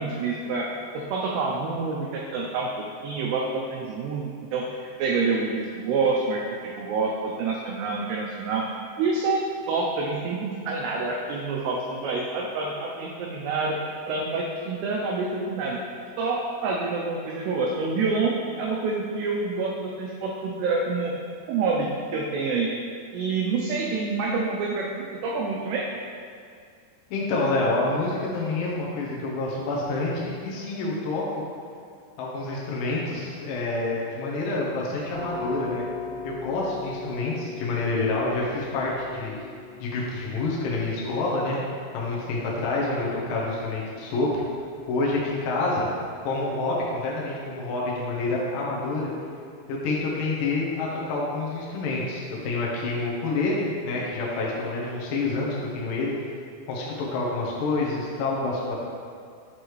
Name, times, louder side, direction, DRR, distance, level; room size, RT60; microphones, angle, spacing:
voice 1, 0.0-9.4 9.7-13.8 14.1-15.9 16.2-21.1 21.5-22.7 23.1-25.8, right 4 dB, 85° right, -2 dB, 2.4 m, -27 dB
voice 2, 27.1-31.4 32.2-35.8 36.2-39.4 39.8-41.6 41.9-44.4 44.9-45.9 46.2-49.1 49.7-56.1 56.7-58.8, left 2 dB, 90° left, -5 dB, 1.9 m, -27 dB
sound 1, 35.1-46.6, left 3 dB, 70° right, 2.2 m, -41 dB
7.2 x 4.7 x 3.1 m, 2.2 s
omnidirectional pair, 5.3 m